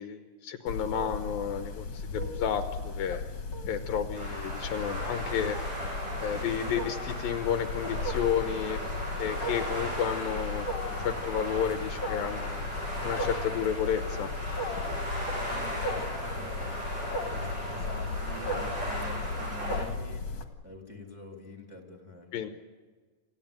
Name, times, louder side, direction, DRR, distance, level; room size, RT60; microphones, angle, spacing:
voice 1, 0.0-3.2 3.7-5.6 6.2-8.8 9.2-12.7 13.0-14.3 22.3-22.5, left 8 dB, 75° left, 8 dB, 2.5 m, -31 dB
Wild animals, 0.7-20.4, left 3 dB, 50° left, 2.4 m, -36 dB
sound 1, 4.1-19.8, right 1 dB, 45° right, 9.0 m, -37 dB
voice 2, 15.4-22.3, left 2 dB, 5° right, 1 dB, 3.1 m, -46 dB
27.5 x 16.0 x 9.1 m, 1.5 s
omnidirectional pair, 4.4 m